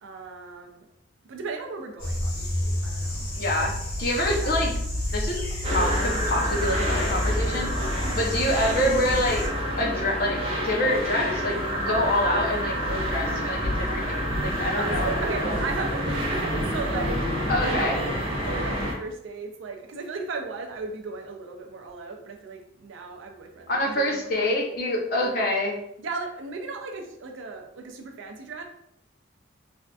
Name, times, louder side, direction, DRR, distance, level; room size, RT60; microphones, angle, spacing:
voice 1, 0.0-0.9 1.3-3.3 4.3-4.6 8.0-8.2 13.1-13.4 14.7-17.2 17.6-24.7 26.0-28.6, right 4 dB, 70° right, 4 dB, 0.4 m, -36 dB
sound 1, 2.0-9.5, left 1 dB, 80° left, 1.2 m, -30 dB
voice 2, 3.4-3.7 4.0-4.7 5.1-5.4 5.7-7.7 8.1-9.4 9.8-10.4 10.6-11.6 11.9-15.1 15.4-15.6 17.5-17.9 23.7-25.8, left 1 dB, 45° left, 0 dB, 0.6 m, -26 dB
sound 2, 5.6-18.9, equal, 30° right, 0.6 m, -28 dB
3.5 x 2.5 x 2.3 m, 0.77 s
head